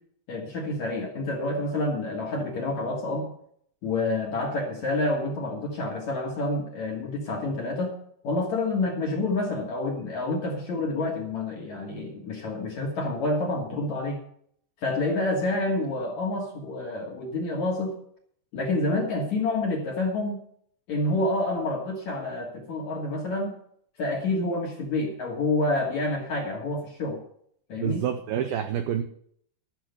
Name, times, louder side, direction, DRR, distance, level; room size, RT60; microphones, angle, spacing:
voice 1, 0.3-3.3 3.8-7.9 8.2-14.2 14.8-17.9 18.5-20.4 20.9-23.6 24.0-27.2 27.7-28.0, left 2 dB, 55° left, -1 dB, 2.1 m, -28 dB
voice 2, 27.8-29.0, right 9 dB, 85° right, 7 dB, 2.1 m, -27 dB
12.5 x 6.3 x 8.0 m, 0.65 s
omnidirectional pair, 5.2 m